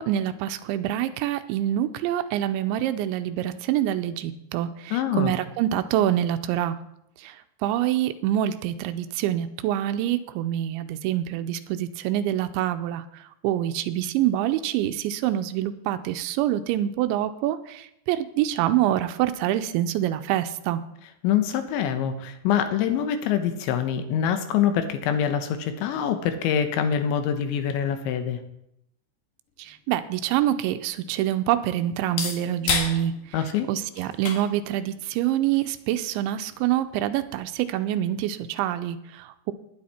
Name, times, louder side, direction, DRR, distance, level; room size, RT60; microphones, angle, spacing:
voice 1, 0.0-6.8 7.2-20.8 29.6-33.4 33.7-39.5, right 12 dB, 80° right, 10 dB, 2.9 m, -26 dB
voice 2, 4.9-5.3 21.2-28.4 33.3-33.7, left 8 dB, 80° left, 8 dB, 3.3 m, -25 dB
sound 1, 29.6-37.6, left 5 dB, 60° left, 2.8 m, -36 dB
18.5 x 10.5 x 4.3 m, 0.80 s
omnidirectional pair, 5.4 m